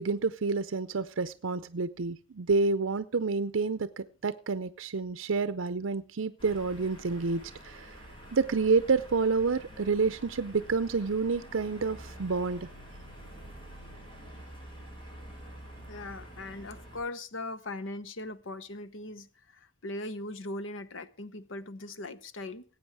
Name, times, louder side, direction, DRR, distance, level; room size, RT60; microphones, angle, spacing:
voice 1, 0.0-8.0 8.3-12.7, right 4 dB, 75° right, 0.6 m, -29 dB
sound 1, 6.4-17.0, right 1 dB, 25° left, 4.5 m, -48 dB
voice 2, 15.9-22.6, left 2 dB, 70° left, 0.9 m, -40 dB
18.5 x 8.7 x 4.7 m
head